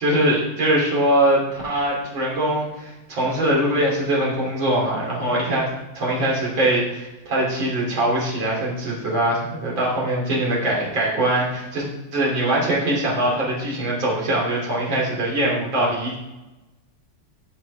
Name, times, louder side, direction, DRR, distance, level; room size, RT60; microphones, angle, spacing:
voice 1, 0.0-5.7 5.9-11.9 12.1-16.2, right 1 dB, 60° right, -4 dB, 3.8 m, -22 dB
15.5 x 5.8 x 3.4 m, 1.0 s
omnidirectional pair, 2.4 m